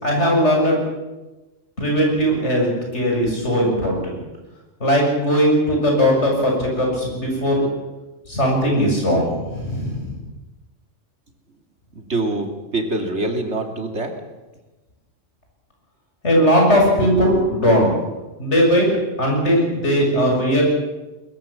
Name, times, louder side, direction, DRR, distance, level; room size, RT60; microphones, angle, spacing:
voice 1, 0.0-0.8 1.8-4.2 4.8-7.6 8.3-10.2 16.2-17.9 18.4-18.9 19.2-20.6, equal, 65° left, 0 dB, 7.4 m, -18 dB
voice 2, 12.0-14.1, right 2 dB, 60° right, 3 dB, 3.1 m, -25 dB
22.5 x 21.5 x 7.1 m, 1.1 s
omnidirectional pair, 1.3 m